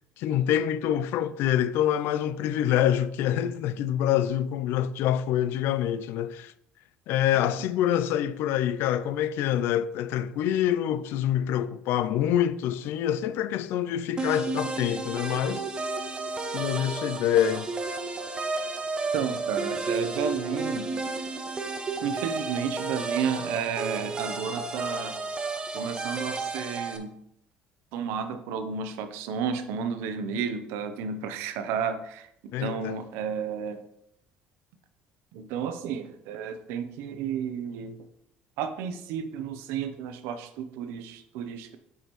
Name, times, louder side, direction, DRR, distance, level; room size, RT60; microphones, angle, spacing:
voice 1, 0.2-6.5 7.1-15.7 16.5-17.7 32.5-33.0, left 10 dB, 75° left, 0.4 m, -26 dB
sound 1, 14.2-27.0, right 3 dB, 25° right, 0.6 m, -32 dB
voice 2, 19.1-20.9 22.0-25.2 25.7-27.1 27.9-33.8 35.3-38.0 38.6-41.8, right 7 dB, 90° right, 0.6 m, -32 dB
6.5 x 5.0 x 3.1 m
cardioid pair, 120°, 4 cm